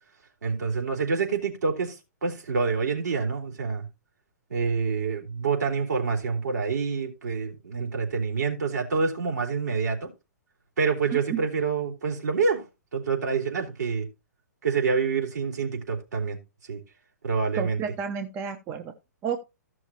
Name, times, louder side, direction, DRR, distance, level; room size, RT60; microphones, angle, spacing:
voice 1, 0.4-2.0 2.2-3.8 4.5-10.1 10.8-12.6 12.9-14.1 14.6-16.4 16.7-16.8 17.2-17.8, right 5 dB, 70° right, 3.8 m, -27 dB
voice 2, 17.5-18.9 19.2-19.4, right 7 dB, 25° right, 0.9 m, -31 dB
14.5 x 6.2 x 2.9 m
figure-of-eight pair, 125°, 10 cm